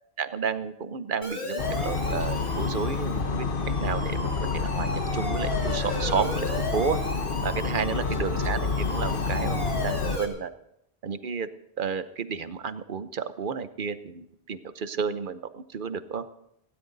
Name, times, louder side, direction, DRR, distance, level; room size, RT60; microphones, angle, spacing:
voice 1, 0.2-3.5 3.8-7.0 7.4-10.5 11.0-11.5 11.8-16.2, right 6 dB, 55° right, 12 dB, 1.0 m, -31 dB
Siren, 1.2-10.3, equal, 30° left, 2.9 m, -35 dB
sound 1, 1.6-10.2, left 4 dB, 60° left, 1.1 m, -28 dB
19.0 x 17.0 x 4.0 m, 0.78 s
omnidirectional pair, 1.1 m